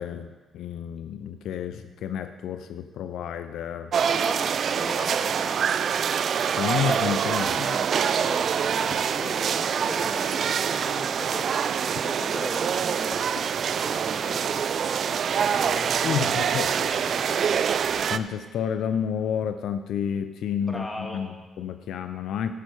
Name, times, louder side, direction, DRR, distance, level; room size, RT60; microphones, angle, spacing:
voice 1, 0.0-3.9 6.6-7.9 8.9-9.0 16.0-16.7 18.1-22.5, left 8 dB, 80° left, 9 dB, 0.4 m, -30 dB
sound 1, 3.9-18.2, right 7 dB, 60° right, 0.4 m, -25 dB
voice 2, 4.0-5.7 8.1-14.5 15.3-17.7 20.6-21.2, left 1 dB, 20° left, 1 dB, 1.8 m, -38 dB
13.0 x 6.4 x 4.8 m, 1.3 s
cardioid pair, 90°, 0 cm